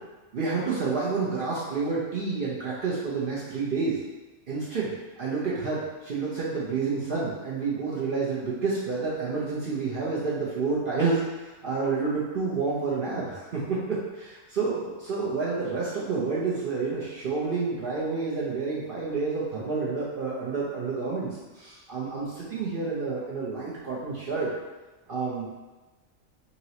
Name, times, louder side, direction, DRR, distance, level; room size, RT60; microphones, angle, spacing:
voice 1, 0.3-4.0 4.5-4.9 5.2-24.5 25.1-25.5, right 4 dB, 55° right, -7 dB, 0.7 m, -29 dB
4.0 x 2.9 x 2.8 m, 1.2 s
omnidirectional pair, 1.3 m